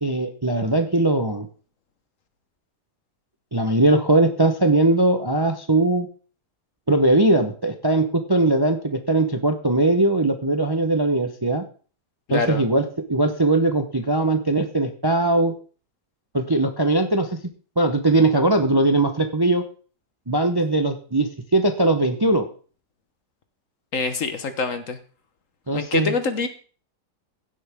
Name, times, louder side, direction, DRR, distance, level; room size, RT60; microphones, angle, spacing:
voice 1, 0.0-1.5 3.5-6.1 6.9-11.6 12.3-12.8 13.1-15.5 16.3-17.4 17.8-19.6 20.3-22.5 25.7-26.1, right 2 dB, 20° right, 7 dB, 0.7 m, -20 dB
voice 2, 12.3-12.6 23.9-25.0 25.7-26.5, left 4 dB, 55° left, 10 dB, 1.4 m, -25 dB
16.0 x 8.1 x 3.6 m, 0.40 s
omnidirectional pair, 1.8 m